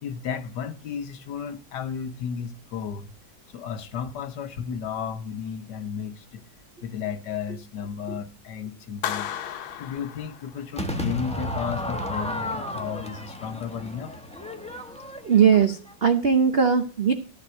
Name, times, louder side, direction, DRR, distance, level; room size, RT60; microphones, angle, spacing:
voice 1, 0.0-3.1 3.5-6.4 6.8-9.3 9.8-14.2, left 7 dB, 65° left, 1.4 m, -33 dB
Clapping, 9.0-10.9, left 10 dB, 90° left, 1.7 m, -34 dB
Crowd / Fireworks, 10.8-16.0, equal, 5° left, 0.9 m, -33 dB
voice 2, 15.2-17.1, right 7 dB, 60° right, 0.6 m, -19 dB
14.0 x 5.4 x 7.7 m
omnidirectional pair, 2.2 m